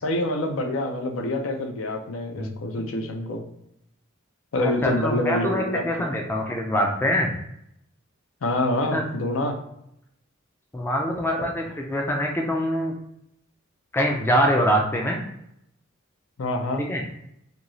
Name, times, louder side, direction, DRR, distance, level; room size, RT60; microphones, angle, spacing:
voice 1, 0.0-3.4 4.5-5.8 6.1-6.2 8.4-9.6 16.4-16.9, left 1 dB, 75° left, 4 dB, 0.5 m, -26 dB
voice 2, 4.6-7.3 8.9-9.0 10.7-12.9 13.9-15.2 16.9-17.0, equal, 10° left, 0 dB, 0.3 m, -24 dB
2.6 x 2.3 x 2.9 m, 0.77 s
head